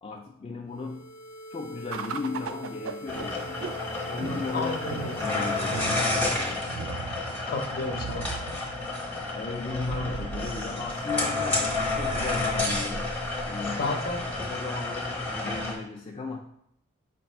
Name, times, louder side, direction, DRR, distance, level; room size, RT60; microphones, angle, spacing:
voice 1, 0.0-1.2 1.5-3.7 4.0-6.7 9.2-13.2 13.5-14.0 14.5-16.4, left 3 dB, 25° left, 0 dB, 0.3 m, -36 dB
sound 1, 0.7-6.9, equal, 90° left, 0.7 m, -43 dB
sound 2, 1.9-14.5, right 5 dB, 70° right, 0.3 m, -39 dB
sound 3, 3.1-15.7, left 2 dB, 10° left, 0.8 m, -30 dB
voice 2, 4.5-5.2 7.5-8.3 13.8-14.2, left 3 dB, 50° left, 3 dB, 0.7 m, -31 dB
4.9 x 2.5 x 4.2 m, 0.75 s
head